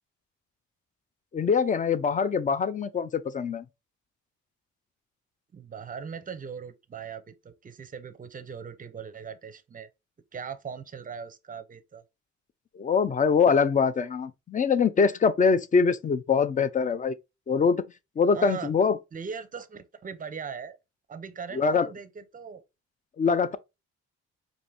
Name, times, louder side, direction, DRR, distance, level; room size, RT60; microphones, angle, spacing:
voice 1, 1.3-3.6 12.7-17.1 17.5-17.8 18.2-19.0 21.5-21.9 23.2-23.6, left 5 dB, 25° left, 0.4 m, -23 dB
voice 2, 5.5-9.9 10.3-12.0 18.3-18.7 19.1-20.8 21.1-22.6, right 6 dB, 30° right, 0.5 m, -39 dB
4.7 x 2.6 x 2.6 m
cardioid pair, 90°, 30 cm